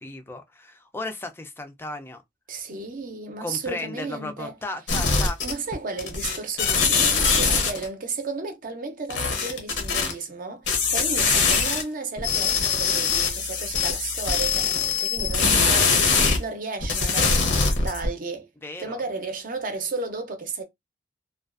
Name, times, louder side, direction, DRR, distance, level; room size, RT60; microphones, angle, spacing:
voice 1, 0.0-2.2 3.4-5.4 18.6-19.0, left 2 dB, 15° left, 0.4 m, -35 dB
voice 2, 2.5-4.6 5.4-18.5 18.8-20.6, right 3 dB, 50° right, 0.6 m, -33 dB
sound 1, 4.9-5.7 6.0-7.9 9.1-10.1 10.7-11.8 12.2-16.4 16.8-18.1, left 5 dB, 75° left, 0.7 m, -22 dB
2.4 x 2.3 x 2.4 m
head